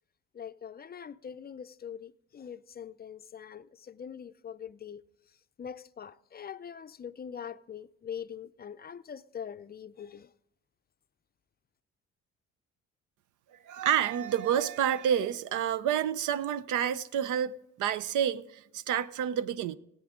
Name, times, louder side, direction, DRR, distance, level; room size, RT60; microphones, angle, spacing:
voice 1, 0.3-5.0 5.6-10.3, left 8 dB, 30° left, 0.5 m, -43 dB
voice 2, 13.6-19.8, right 9 dB, 80° right, 0.6 m, -29 dB
20.0 x 8.5 x 3.7 m
cardioid pair, 90°, 30 cm